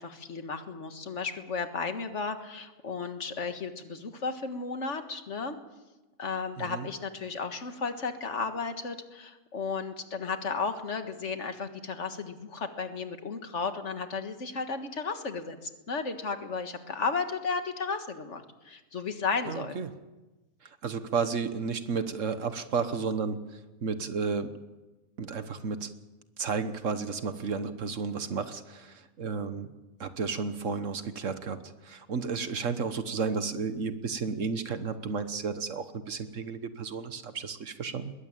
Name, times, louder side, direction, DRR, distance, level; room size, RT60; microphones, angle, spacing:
voice 1, 0.0-5.6 6.2-19.8, left 4 dB, 60° left, 7 dB, 2.0 m, -34 dB
voice 2, 19.5-19.9 20.8-23.4 23.8-24.5 25.2-25.9 26.4-29.7 30.0-31.6 31.8-38.1, right 5 dB, 65° right, 10 dB, 1.5 m, -32 dB
21.0 x 16.0 x 9.0 m, 1.1 s
omnidirectional pair, 1.4 m